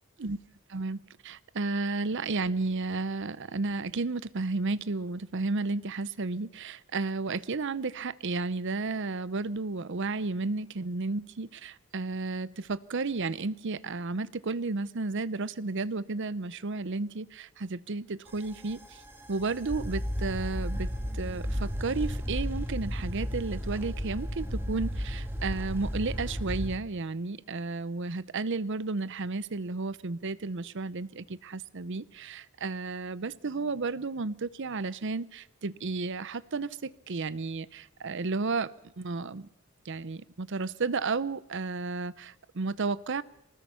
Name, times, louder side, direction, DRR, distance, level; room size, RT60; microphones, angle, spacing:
voice 1, 0.7-19.0 19.3-38.7 39.0-39.5 39.8-43.2, right 3 dB, 60° right, 17 dB, 0.7 m, -33 dB
sound 1, 18.3-26.7, equal, 10° right, 2.0 m, -34 dB
24.0 x 19.5 x 5.7 m, 0.82 s
head